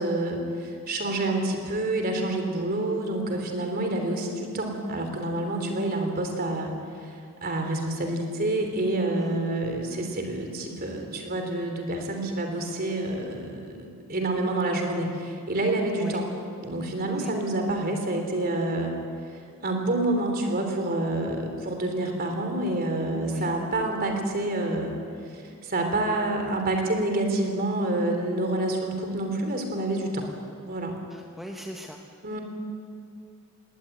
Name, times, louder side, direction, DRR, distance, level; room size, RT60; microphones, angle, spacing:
voice 1, 0.0-16.3 16.6-18.9 19.3-25.0 25.2-30.3 30.7-31.0 32.2-32.4, right 2 dB, 40° right, 4 dB, 3.2 m, -28 dB
voice 2, 9.1-9.4 16.0-16.2 17.1-17.3 23.3-23.5 31.1-32.0, equal, ahead, 1 dB, 1.1 m, -38 dB
20.0 x 18.0 x 9.1 m, 2.2 s
head